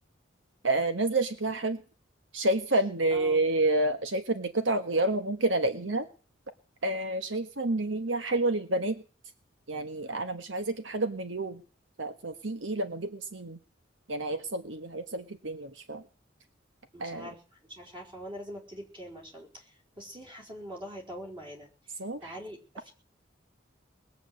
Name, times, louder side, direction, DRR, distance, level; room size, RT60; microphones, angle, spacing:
voice 1, 0.6-1.8 2.3-6.1 6.8-9.0 9.7-11.6 12.0-13.6 14.1-16.0 17.0-17.3 22.0-22.3, right 2 dB, 80° right, 9 dB, 1.5 m, -29 dB
voice 2, 3.1-3.5 16.9-17.4 17.7-22.9, equal, 30° right, 1 dB, 4.6 m, -44 dB
20.5 x 7.6 x 7.7 m, 0.38 s
head